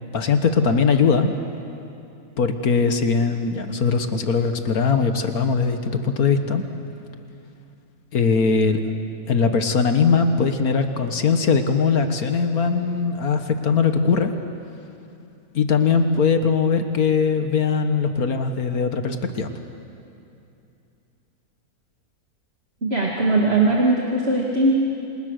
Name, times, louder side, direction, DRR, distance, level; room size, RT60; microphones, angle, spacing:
voice 1, 0.1-1.3 2.4-6.6 8.1-8.8 9.3-14.3 15.6-19.5, left 5 dB, 70° left, 7 dB, 1.9 m, -20 dB
voice 2, 22.8-24.8, right 2 dB, 40° right, -2 dB, 2.6 m, -19 dB
27.5 x 27.5 x 6.6 m, 2.7 s
omnidirectional pair, 1.6 m